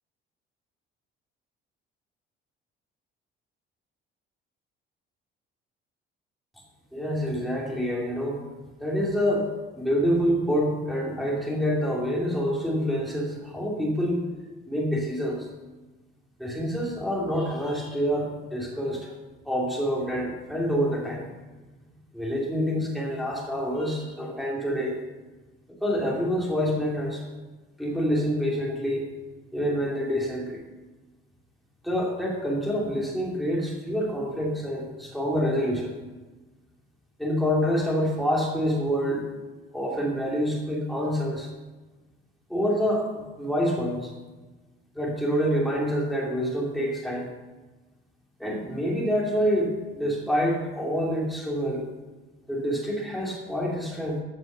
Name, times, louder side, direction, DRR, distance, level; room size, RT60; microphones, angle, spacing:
voice 1, 6.9-8.4 8.8-9.5 9.8-14.2 14.7-15.4 16.4-19.1 19.4-21.4 22.1-25.0 25.8-27.2 27.8-29.1 29.5-30.6 31.8-35.9 37.2-39.2 39.7-41.5 42.5-44.1 44.9-47.3 48.4-51.9 52.5-54.2, equal, ahead, -3 dB, 2.7 m, -27 dB
14.0 x 6.0 x 6.8 m, 1.2 s
cardioid pair, 175°, 21 cm